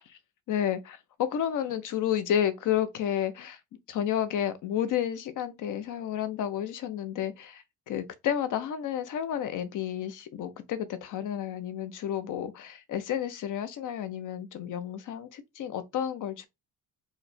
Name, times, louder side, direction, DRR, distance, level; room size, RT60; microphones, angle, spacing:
voice 1, 0.5-3.6 3.9-16.5, left 10 dB, 65° left, 0.7 m, -31 dB
4.8 x 2.1 x 2.6 m
cardioid pair, 140°, 34 cm